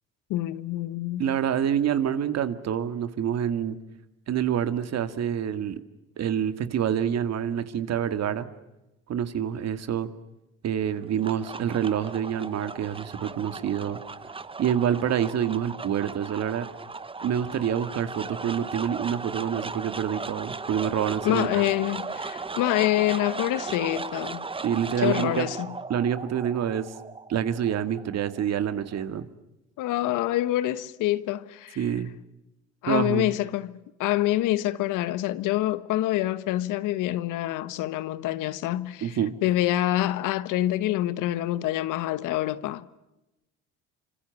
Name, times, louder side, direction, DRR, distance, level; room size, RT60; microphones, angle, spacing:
voice 1, 0.3-1.3 21.2-24.4 25.0-25.8 29.8-31.9 32.8-43.0, left 14 dB, 70° left, 1.2 m, -26 dB
voice 2, 1.2-3.8 4.3-5.8 6.2-8.5 9.1-10.1 10.6-14.0 14.6-16.7 17.2-21.6 24.6-25.5 25.9-26.9 27.3-29.3 31.8-32.1 32.9-33.3 39.0-39.3, right 9 dB, 55° right, 2.0 m, -27 dB
sound 1, 10.9-29.2, right 4 dB, 15° right, 0.9 m, -37 dB
26.5 x 26.0 x 7.2 m
supercardioid pair, 85°, 32 cm